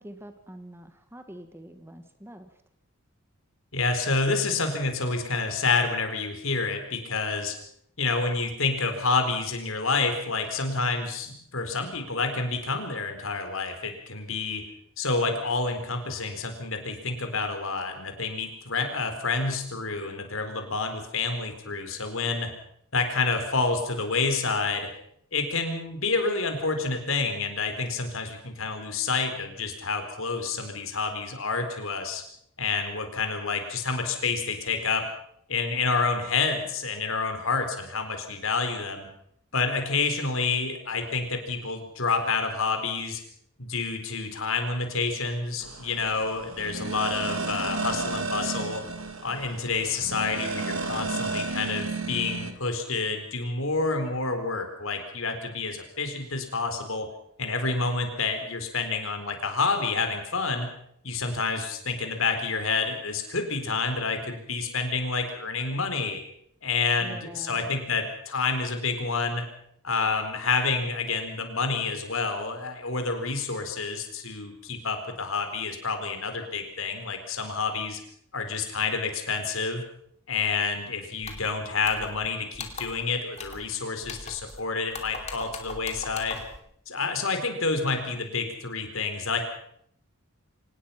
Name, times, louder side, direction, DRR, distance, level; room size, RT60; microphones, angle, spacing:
voice 1, 0.0-2.5 67.0-67.7, right 1 dB, 10° right, 8 dB, 1.4 m, -45 dB
voice 2, 3.7-7.5 8.0-14.6 15.0-22.5 22.9-24.9 25.3-32.2 32.6-35.0 35.5-39.1 39.5-43.2 43.6-48.8 49.2-57.1 57.4-60.7 61.0-66.2 66.6-69.4 69.8-78.0 78.3-79.8 80.3-86.4 86.9-89.4, left 4 dB, 70° left, 6 dB, 4.2 m, -28 dB
sound 1, 45.6-52.5, right 3 dB, 70° right, 2.5 m, -32 dB
sound 2, 81.2-81.5 81.8-82.3 82.5-83.0 83.4-83.7 84.0-84.6 84.9-86.6, left 4 dB, 30° left, 2.8 m, -40 dB
25.0 x 19.0 x 5.8 m, 0.68 s
head